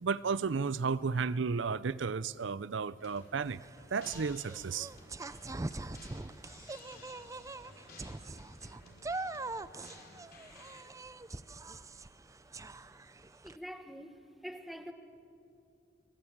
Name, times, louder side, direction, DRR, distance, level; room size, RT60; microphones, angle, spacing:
voice 1, 0.0-3.6 3.9-4.9, right 5 dB, 70° right, 18 dB, 0.6 m, -33 dB
sound 1, 3.0-10.8, left 3 dB, 50° left, 4.7 m, -56 dB
sound 2, 3.4-13.6, right 2 dB, 15° right, 0.5 m, -43 dB
voice 2, 13.4-14.9, equal, ahead, 6 dB, 1.5 m, -45 dB
24.5 x 21.0 x 8.7 m, 2.6 s
head